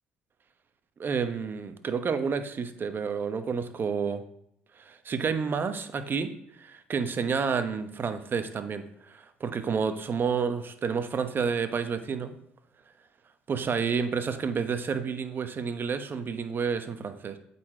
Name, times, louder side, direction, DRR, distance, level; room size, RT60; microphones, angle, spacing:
voice 1, 1.0-4.2 4.8-6.3 6.6-12.3 13.5-17.4, right 6 dB, 40° right, 9 dB, 0.9 m, -30 dB
8.4 x 4.3 x 4.4 m, 0.74 s
hypercardioid pair, 60°, 5 cm